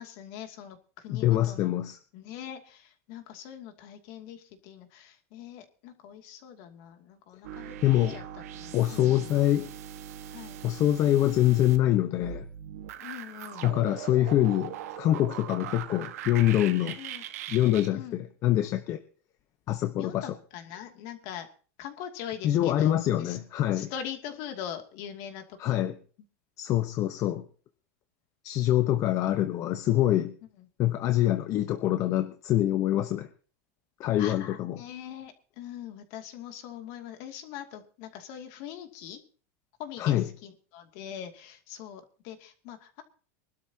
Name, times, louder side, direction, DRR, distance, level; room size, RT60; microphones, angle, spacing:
voice 1, 0.0-1.7 2.1-7.8 8.1-8.2 8.5-9.4 10.3-10.6 13.0-13.7 17.0-17.2 17.9-18.2 19.9-21.5 21.8-23.4 23.7-25.8 30.6-30.7 34.2-39.2 39.8-43.0, left 9 dB, 55° left, 5 dB, 2.6 m, -42 dB
voice 2, 1.1-2.0 7.8-8.2 8.7-9.7 10.6-12.4 13.6-17.0 17.5-19.0 19.7-20.3 22.4-23.9 25.6-25.9 26.6-27.5 28.4-30.3 30.8-33.3 34.0-34.8 40.0-40.3, left 13 dB, 40° left, 8 dB, 1.0 m, -25 dB
sound 1, 7.4-17.9, right 10 dB, 80° right, 1.5 m, -41 dB
24.0 x 12.5 x 2.9 m, 0.39 s
supercardioid pair, 140°, 8 cm